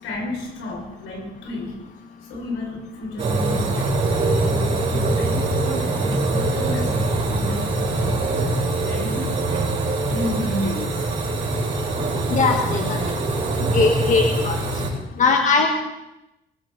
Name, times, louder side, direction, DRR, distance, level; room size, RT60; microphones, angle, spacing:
voice 1, 0.0-1.8 2.3-4.2 4.5-8.2 8.8-9.4 10.1-11.4 12.2-12.3, left 1 dB, 85° left, 0 dB, 6.2 m, -32 dB
sound 1, 3.2-14.9, right 2 dB, 30° right, 5.6 m, -23 dB
voice 2, 12.3-13.0 13.7-14.6 15.2-15.7, left 4 dB, 40° left, 2 dB, 1.6 m, -19 dB
21.5 x 15.5 x 4.1 m, 0.93 s
cardioid pair, 140°, 21 cm